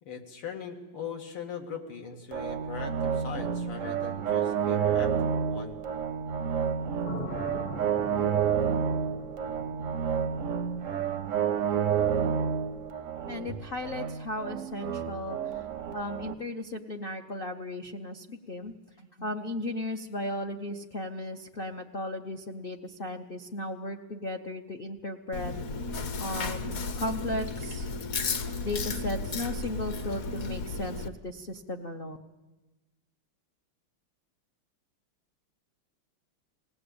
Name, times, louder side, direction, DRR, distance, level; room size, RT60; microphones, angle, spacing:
voice 1, 0.0-5.1 5.5-5.8 13.5-13.6, left 6 dB, 85° left, 2 dB, 2.8 m, -40 dB
sound 1, 2.3-16.3, right 7 dB, 65° right, 0.7 m, -30 dB
sound 2, 7.0-11.1, left 2 dB, 35° left, 0.8 m, -42 dB
voice 2, 13.3-15.6 15.9-25.5 26.2-27.9 28.6-32.2, left 1 dB, 70° left, 4 dB, 0.5 m, -36 dB
Chewing mastication, 25.3-31.1, left 3 dB, 50° left, 1.2 m, -34 dB
20.5 x 17.5 x 8.6 m, 1.1 s
omnidirectional pair, 2.4 m